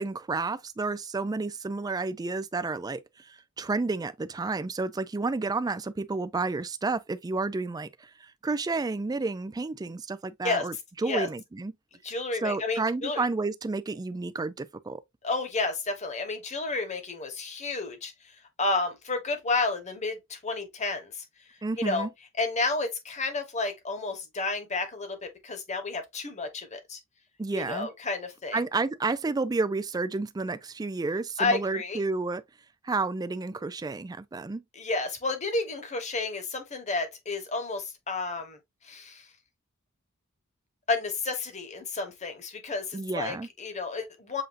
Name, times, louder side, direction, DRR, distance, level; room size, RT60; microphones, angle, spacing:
voice 1, 0.0-10.7 11.0-11.7 12.4-15.0 21.6-22.1 27.4-27.9 28.5-32.4 32.8-34.6 42.9-43.5, right 3 dB, 20° right, 0.3 m, -31 dB
voice 2, 12.0-13.2 15.2-18.1 18.6-21.2 21.8-22.1 22.4-27.0 27.5-28.6 31.4-32.0 34.8-38.6 38.8-39.2 40.9-44.4, left 3 dB, 35° left, 1.2 m, -31 dB
7.6 x 2.6 x 2.6 m
head